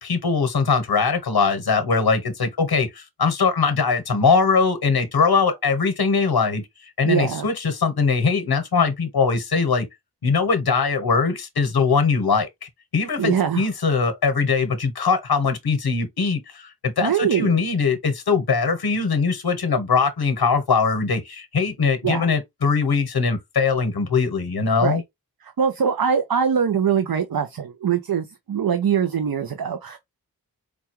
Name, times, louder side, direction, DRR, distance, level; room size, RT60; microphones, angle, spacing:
voice 1, 0.0-6.6 7.0-9.9 10.2-12.5 12.9-25.0, left 5 dB, 90° left, 1.1 m, -21 dB
voice 2, 7.0-7.5 13.2-13.6 17.0-17.5 22.0-22.3 24.8-25.0 25.4-30.0, right 7 dB, 70° right, 0.6 m, -22 dB
5.1 x 2.3 x 2.9 m
wide cardioid pair, 75°, 37 cm